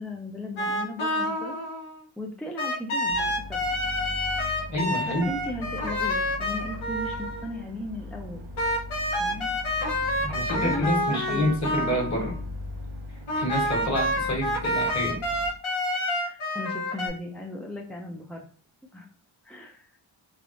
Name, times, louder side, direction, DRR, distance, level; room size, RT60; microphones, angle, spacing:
voice 1, 0.0-1.6 2.2-3.6 5.0-8.5 9.1-9.5 10.2-11.4 16.0-18.5 18.9-19.1 19.4-19.9, left 1 dB, 5° left, 1 dB, 0.3 m, -37 dB
sound 1, 0.6-2.0 2.6-7.5 8.6-12.4 13.3-17.1, left 1 dB, 85° left, 1.0 m, -28 dB
sound 2, 3.1-15.5, left 1 dB, 75° right, 0.7 m, -39 dB
voice 2, 4.7-5.3 10.2-12.3 13.3-15.2, equal, 35° left, -1 dB, 1.3 m, -28 dB
3.4 x 2.4 x 2.5 m, 0.43 s
cardioid pair, 60°, 48 cm